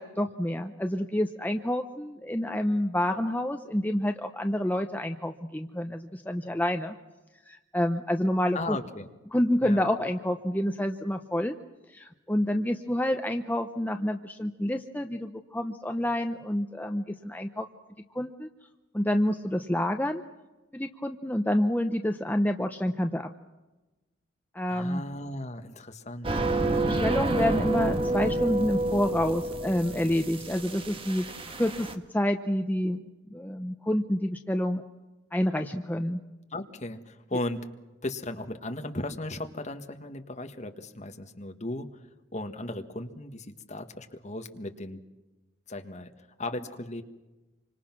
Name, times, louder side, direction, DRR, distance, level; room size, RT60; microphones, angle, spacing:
voice 1, 0.0-7.0 7.5-8.8 9.3-11.5 11.9-17.7 18.1-18.5 18.9-20.2 20.7-23.3 24.5-25.0 26.6-31.2 31.6-33.0 33.3-34.8 35.3-36.2, left 1 dB, 10° left, 5 dB, 0.8 m, -28 dB
voice 2, 8.5-9.1 9.6-9.8 24.7-26.4 36.5-37.7 38.0-45.0 45.7-47.0, left 1 dB, 35° left, 6 dB, 1.7 m, -36 dB
sound 1, 26.2-31.9, right 2 dB, 30° right, 1.5 m, -29 dB
27.5 x 25.5 x 6.1 m, 1.1 s
head